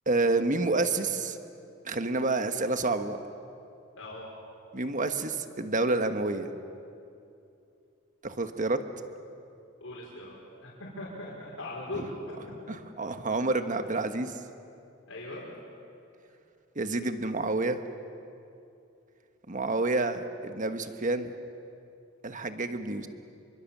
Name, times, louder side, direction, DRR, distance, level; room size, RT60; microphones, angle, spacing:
voice 1, 0.1-1.4 1.8-3.2 4.7-6.5 8.2-8.8 12.7-14.4 16.7-17.8 19.5-21.3 22.2-23.1, right 2 dB, 40° right, 8 dB, 1.3 m, -28 dB
voice 2, 4.0-4.3 9.8-10.4 10.6-12.1 13.7-13.8 15.1-15.4, left 2 dB, 75° left, -5 dB, 5.3 m, -39 dB
27.0 x 24.0 x 7.4 m, 2.6 s
head